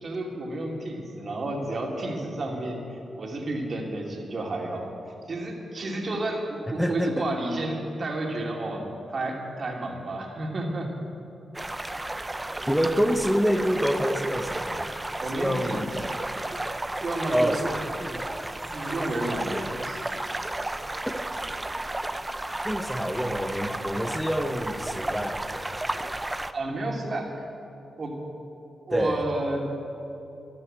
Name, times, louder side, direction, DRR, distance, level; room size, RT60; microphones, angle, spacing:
voice 1, 0.0-4.9 5.3-8.8 9.1-11.1 15.2-16.1 17.0-17.7 18.7-20.0 26.5-27.5 28.0-28.1 28.9-29.8, right 2 dB, 55° right, 0 dB, 2.8 m, -31 dB
voice 2, 6.8-7.3 12.7-14.9 15.3-15.9 17.3-18.6 22.6-25.8 28.9-29.2, equal, 5° left, 7 dB, 1.3 m, -27 dB
sound 1, 11.5-26.5, right 1 dB, 20° right, 0.7 m, -33 dB
13.0 x 11.5 x 7.8 m, 2.9 s
supercardioid pair, 55°, 0 cm